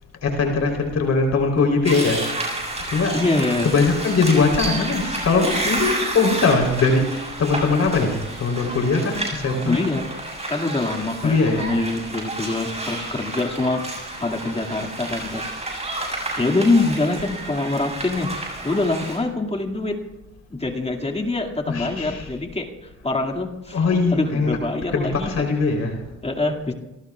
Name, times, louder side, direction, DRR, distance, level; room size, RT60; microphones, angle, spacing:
voice 1, 0.2-3.2 3.6-9.8 11.2-11.7 21.7-22.3 23.7-24.6 24.9-26.0, left 4 dB, 60° left, 2 dB, 3.8 m, -21 dB
sound 1, 1.8-19.2, right 2 dB, 20° right, 7.2 m, -30 dB
voice 2, 3.1-3.7 9.7-10.1 10.5-13.8 14.2-15.8 16.4-18.3 18.6-20.0 20.5-22.7 23.0-23.9 24.1-25.5 26.2-26.7, left 2 dB, 20° left, 3 dB, 2.3 m, -24 dB
30.0 x 19.0 x 2.4 m, 0.96 s
cardioid pair, 90°, 30 cm